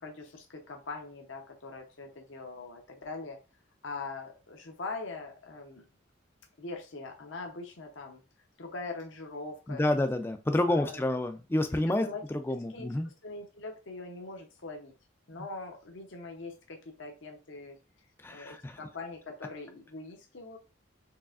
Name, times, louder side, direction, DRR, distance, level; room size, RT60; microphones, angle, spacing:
voice 1, 0.0-3.4 3.8-5.9 6.6-8.2 8.6-9.8 10.7-11.0 12.0-12.2 12.7-14.9 15.3-17.8 18.3-20.6, left 3 dB, 70° left, 2 dB, 0.8 m, -42 dB
voice 2, 9.7-13.1 15.3-15.5 18.2-18.8, left 1 dB, 10° left, 7 dB, 0.3 m, -29 dB
4.6 x 3.3 x 2.4 m, 0.31 s
head